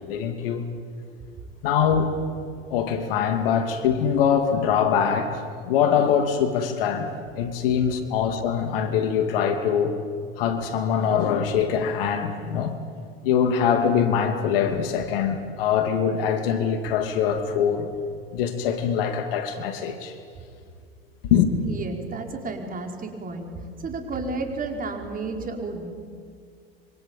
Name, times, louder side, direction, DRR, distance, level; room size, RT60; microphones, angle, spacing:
voice 1, 0.1-0.7 1.6-2.1 2.7-7.1 7.4-10.0 10.4-12.8 13.2-17.9 18.3-20.1 21.3-21.5, left 7 dB, 65° left, 2.8 m, -23 dB
voice 2, 21.6-23.5 23.8-25.9, right 3 dB, 25° right, 5.3 m, -32 dB
26.0 x 24.5 x 9.1 m
hypercardioid pair, 85°, 31 cm